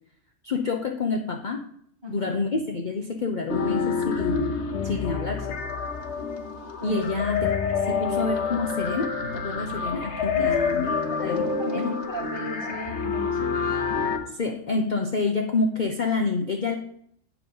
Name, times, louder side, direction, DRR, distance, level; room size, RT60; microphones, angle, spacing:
voice 1, 0.4-1.6 2.1-5.6 6.8-7.5 7.9-11.4 11.8-12.0 14.3-16.8, left 4 dB, 45° left, 4 dB, 0.8 m, -28 dB
voice 2, 2.0-2.3 6.8-7.1 10.3-10.5 10.8-13.5, left 1 dB, 20° right, -3 dB, 2.8 m, -36 dB
sound 1, 3.5-14.2, left 5 dB, 60° left, 1.3 m, -28 dB
9.4 x 6.7 x 5.4 m, 0.68 s
omnidirectional pair, 1.3 m